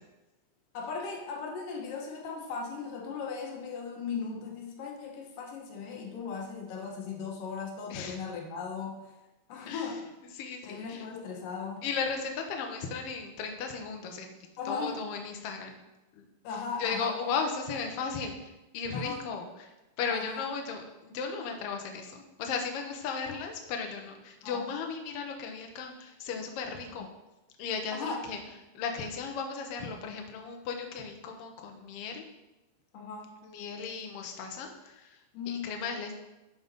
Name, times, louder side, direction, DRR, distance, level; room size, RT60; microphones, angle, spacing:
voice 1, 0.7-9.1 9.5-10.1 10.6-11.9 14.6-15.1 16.4-17.2 18.9-19.3 20.1-20.4 23.2-23.4 24.4-24.6 27.0-27.1 27.9-28.2 32.9-33.3 35.3-35.7, left 5 dB, 85° left, 0 dB, 2.9 m, -37 dB
voice 2, 10.3-11.0 11.8-14.3 14.6-15.8 16.2-16.3 16.8-19.7 20.0-27.1 27.6-28.4 28.7-32.2 33.4-35.2 35.5-36.1, left 5 dB, 65° left, 3 dB, 1.5 m, -36 dB
10.5 x 4.0 x 5.4 m, 1.0 s
omnidirectional pair, 3.8 m